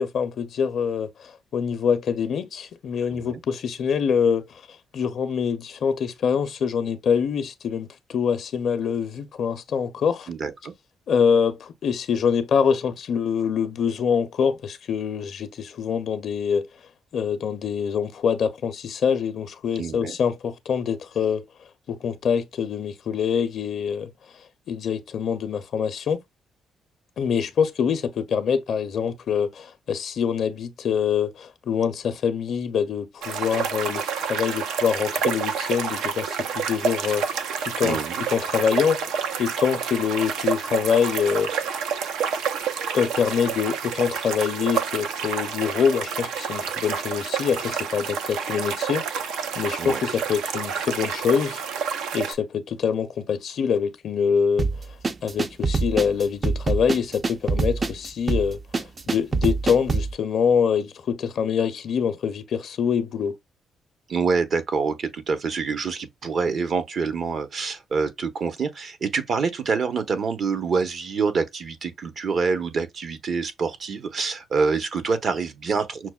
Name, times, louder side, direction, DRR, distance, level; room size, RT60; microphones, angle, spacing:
voice 1, 0.0-4.6 4.9-10.3 11.1-16.7 17.1-21.5 21.9-26.2 27.2-38.0 38.3-41.5 42.9-51.6 52.1-63.4, left 7 dB, 65° left, 0.5 m, -25 dB
voice 2, 3.1-3.4 10.3-10.7 19.8-20.2 37.8-38.2 49.8-50.0 64.1-76.1, right 5 dB, 55° right, 0.8 m, -26 dB
sound 1, 33.2-52.3, right 6 dB, 85° right, 0.5 m, -29 dB
sound 2, 54.6-60.1, right 4 dB, 35° right, 0.4 m, -25 dB
6.0 x 2.1 x 2.2 m
cardioid pair, 90°, 0 cm